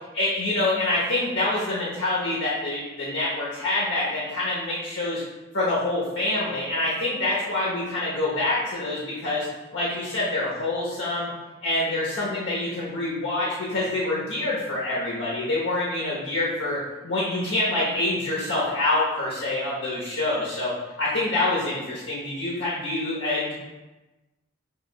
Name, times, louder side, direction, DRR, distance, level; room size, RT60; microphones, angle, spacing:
voice 1, 0.1-5.2 5.5-9.5 9.7-11.3 11.6-20.7 21.0-23.5, left 2 dB, 80° left, -7 dB, 1.1 m, -26 dB
6.6 x 3.2 x 2.3 m, 1.1 s
head